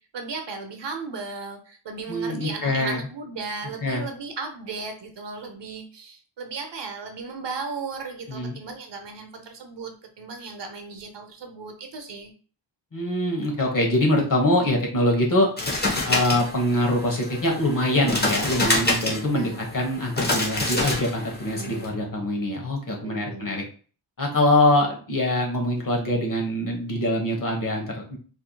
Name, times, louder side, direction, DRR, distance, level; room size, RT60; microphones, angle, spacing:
voice 1, 0.1-12.3 19.3-19.7 20.6-20.8 21.5-21.9 23.0-23.5, right 4 dB, 65° right, 5 dB, 0.7 m, -36 dB
voice 2, 2.1-3.0 3.8-4.0 8.3-8.6 12.9-15.5 16.0-23.6 24.2-28.2, left 1 dB, 45° left, 0 dB, 1.1 m, -24 dB
sound 1, 15.6-21.9, left 2 dB, 20° left, 0.9 m, -27 dB
4.5 x 2.7 x 2.2 m, 0.41 s
wide cardioid pair, 125°, 45 cm